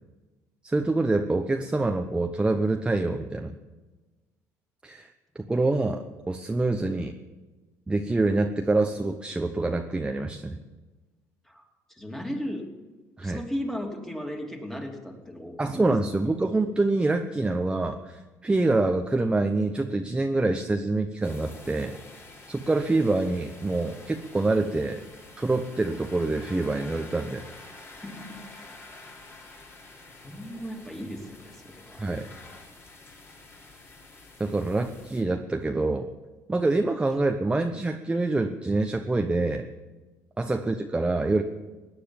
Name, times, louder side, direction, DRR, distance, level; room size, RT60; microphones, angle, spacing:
voice 1, 0.6-3.5 4.8-7.2 7.9-10.6 13.2-13.4 15.6-22.0 22.5-25.0 25.4-27.4 32.0-32.3 34.4-36.1 36.5-39.7 40.4-41.4, right 2 dB, 15° right, 5 dB, 0.9 m, -26 dB
voice 2, 12.0-12.6 13.2-15.8 28.0-28.4 30.2-32.0, equal, 5° left, 1 dB, 2.9 m, -36 dB
sound 1, 21.2-35.2, left 2 dB, 30° left, 3.9 m, -48 dB
17.0 x 9.9 x 7.2 m, 1.2 s
supercardioid pair, 90°, 8 cm